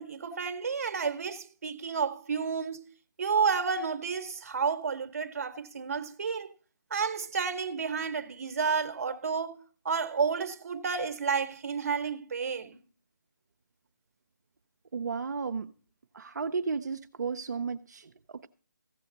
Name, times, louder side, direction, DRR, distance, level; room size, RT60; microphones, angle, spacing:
voice 1, 0.0-2.9 3.2-6.5 6.9-12.8, right 5 dB, 45° right, 0.9 m, -31 dB
voice 2, 14.9-15.7 16.1-18.5, right 5 dB, 60° right, 0.6 m, -34 dB
15.0 x 6.4 x 3.9 m
figure-of-eight pair, 160°, 10 cm